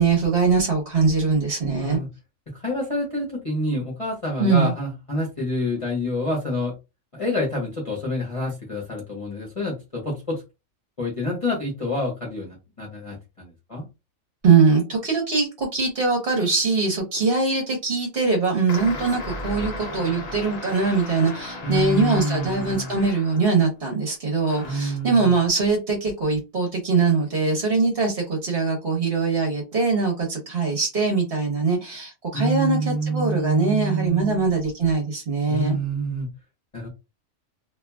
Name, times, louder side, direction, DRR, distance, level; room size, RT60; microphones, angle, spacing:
voice 1, 0.0-2.0 4.4-4.7 14.4-35.8, right 4 dB, 50° right, 1.1 m, -22 dB
voice 2, 1.8-2.1 2.5-6.7 7.1-10.4 11.0-13.8 21.6-22.9 24.6-25.3 32.3-34.4 35.5-36.3 36.7-36.9, equal, 30° left, 0.9 m, -27 dB
sound 1, 18.7-23.7 24.4-25.0, left 2 dB, 45° left, 0.6 m, -36 dB
2.8 x 2.4 x 2.2 m
omnidirectional pair, 1.4 m